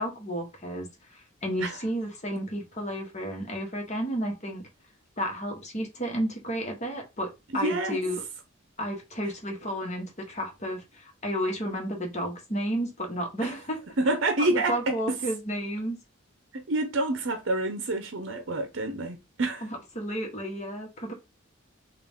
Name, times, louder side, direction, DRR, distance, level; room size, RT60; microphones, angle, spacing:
voice 1, 0.0-4.7 5.2-8.2 8.8-13.8 14.4-16.0 19.6-19.7 19.9-21.1, equal, 35° left, 1.2 m, -32 dB
voice 2, 7.5-8.0 13.4-13.5 14.0-15.2 16.5-19.7, right 2 dB, 60° right, 0.7 m, -28 dB
3.9 x 2.5 x 3.5 m
head